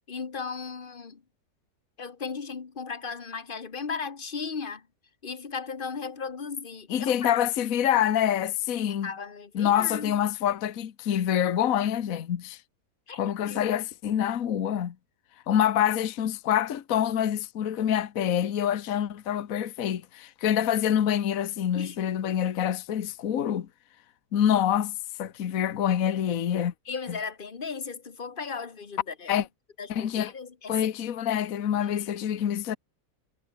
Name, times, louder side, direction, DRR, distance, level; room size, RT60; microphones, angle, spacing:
voice 1, 0.1-1.2 2.0-4.9 5.2-7.3 8.9-10.2 13.1-13.2 13.5-13.7 15.5-15.6 21.7-22.0 26.9-29.5 29.8-30.9 31.8-32.1, left 5 dB, 35° left, 1.5 m, -36 dB
voice 2, 6.9-9.1 9.5-12.6 13.1-14.9 15.5-23.7 24.3-26.7 27.1-27.2 29.3-29.5 29.9-30.3 30.7-32.8, left 10 dB, 60° left, 1.4 m, -26 dB
omnidirectional pair, 1.8 m